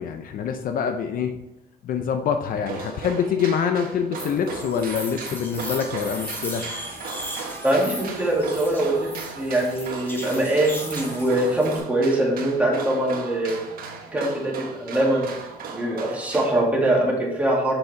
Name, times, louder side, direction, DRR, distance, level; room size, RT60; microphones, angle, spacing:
voice 1, 0.0-1.4 1.8-6.6, left 7 dB, 55° left, 7 dB, 0.6 m, -25 dB
sound 1, 2.6-16.6, right 5 dB, 60° right, 1.3 m, -37 dB
sound 2, 4.2-11.8, equal, 10° left, 2.2 m, -37 dB
voice 2, 7.6-13.6 14.1-15.3 15.7-17.8, right 1 dB, 10° right, -3 dB, 2.2 m, -23 dB
6.9 x 5.5 x 3.4 m, 0.95 s
cardioid pair, 110°, 17 cm